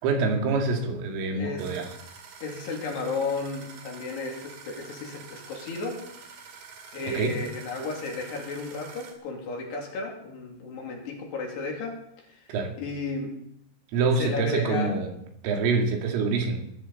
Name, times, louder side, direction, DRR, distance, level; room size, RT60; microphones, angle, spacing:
voice 1, 0.0-1.9 7.1-7.4 12.5-12.7 13.9-15.1 15.4-16.6, right 4 dB, 75° right, 3 dB, 4.6 m, -26 dB
voice 2, 1.4-1.8 2.4-6.0 6.9-12.4 12.8-13.5 14.2-14.9, left 3 dB, 60° left, 0 dB, 4.6 m, -33 dB
sound 1, 1.6-9.1, right 5 dB, 55° right, 3.9 m, -47 dB
21.0 x 14.0 x 4.2 m, 0.76 s
omnidirectional pair, 5.9 m